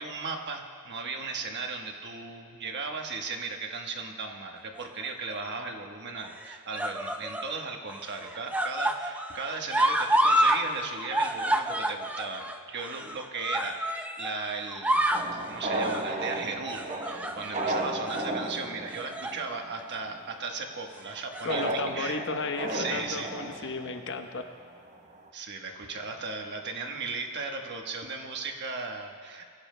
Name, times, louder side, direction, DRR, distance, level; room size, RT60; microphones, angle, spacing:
voice 1, 0.0-15.0 15.3-22.3 22.7-23.7 25.3-29.4, right 4 dB, 50° right, 3 dB, 1.2 m, -36 dB
sound 1, 4.8-5.3 6.2-7.5 7.9-10.6 10.9-14.4 14.7-15.3 15.8-16.1 16.7-17.7 18.1-18.3 18.9-19.4 19.8-20.0 21.1-21.7 22.6-22.7, right 1 dB, 5° right, 0.5 m, -29 dB
sound 2, 15.1-19.8 20.1-20.2 21.5-24.4 24.9-25.0 25.2-25.3, right 1 dB, 35° right, 0.9 m, -34 dB
voice 2, 21.4-24.4, left 3 dB, 60° left, 6 dB, 0.9 m, -34 dB
22.5 x 16.0 x 2.2 m, 2.2 s
head